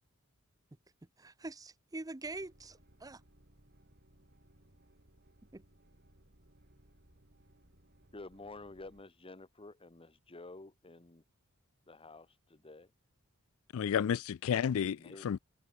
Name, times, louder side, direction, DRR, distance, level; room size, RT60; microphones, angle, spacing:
voice 1, 1.2-3.2 5.5-5.6, right 2 dB, 15° right, 0.7 m, -44 dB
sound 1, 2.2-9.0, right 1 dB, 50° right, 4.9 m, -64 dB
voice 2, 8.1-11.2 11.9-12.9 14.9-15.3, left 2 dB, 25° left, 1.2 m, -51 dB
voice 3, 13.7-15.4, left 8 dB, 70° left, 0.4 m, -31 dB
head